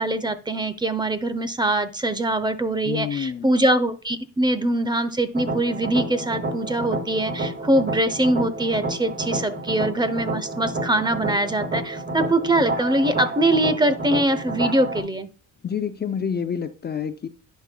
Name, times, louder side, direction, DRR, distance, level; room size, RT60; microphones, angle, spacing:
voice 1, 0.0-15.3, right 1 dB, 15° right, 0.8 m, -23 dB
voice 2, 2.8-3.5 15.6-17.3, left 7 dB, 35° left, 0.6 m, -28 dB
sound 1, 5.3-15.0, right 2 dB, 35° right, 2.3 m, -29 dB
11.0 x 4.6 x 2.3 m
cardioid pair, 90°, 30 cm